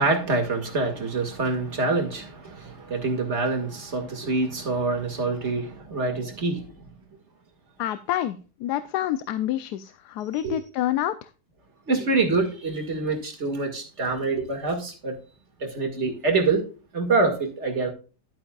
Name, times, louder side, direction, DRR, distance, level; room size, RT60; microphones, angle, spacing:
voice 1, 0.0-6.8 10.4-10.6 11.9-15.2 15.6-16.6 16.9-17.9, right 3 dB, 40° right, 2.3 m, -26 dB
voice 2, 7.8-11.3, left 12 dB, 75° left, 1.1 m, -28 dB
11.5 x 8.5 x 2.3 m
omnidirectional pair, 1.8 m